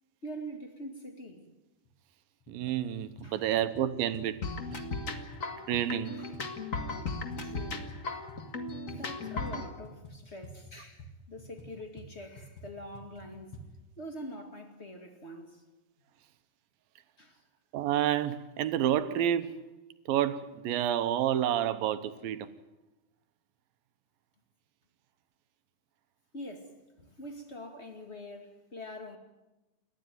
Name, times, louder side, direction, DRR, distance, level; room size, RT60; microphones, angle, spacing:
voice 1, 0.2-1.5 3.2-3.5 6.0-6.4 7.4-7.9 8.9-13.6 14.0-15.6 17.2-17.4 26.3-29.2, equal, 25° left, 1.5 m, -44 dB
sound 1, 1.9-2.0 2.4-2.7 3.0-8.0 8.3-13.7, left 1 dB, 40° left, 2.8 m, -49 dB
voice 2, 2.5-4.4 4.7-4.8 5.7-6.2 17.7-19.6 20.1-22.5, right 11 dB, 75° right, 2.6 m, -29 dB
sound 2, 4.4-9.7, left 3 dB, 60° left, 0.8 m, -36 dB
28.5 x 13.0 x 9.3 m
omnidirectional pair, 4.5 m